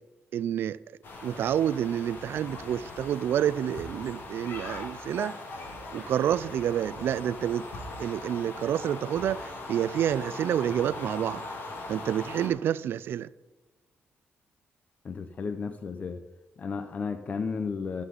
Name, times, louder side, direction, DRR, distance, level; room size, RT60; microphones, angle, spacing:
voice 1, 0.3-0.8 1.2-5.4 5.9-7.7 8.0-11.4 11.9-13.3, right 10 dB, 70° right, 0.4 m, -28 dB
sound 1, 1.0-12.5, left 2 dB, 60° left, 2.0 m, -40 dB
voice 2, 15.0-16.2 16.6-18.0, left 5 dB, 40° left, 0.6 m, -33 dB
14.0 x 7.7 x 4.0 m
cardioid pair, 135°, 4 cm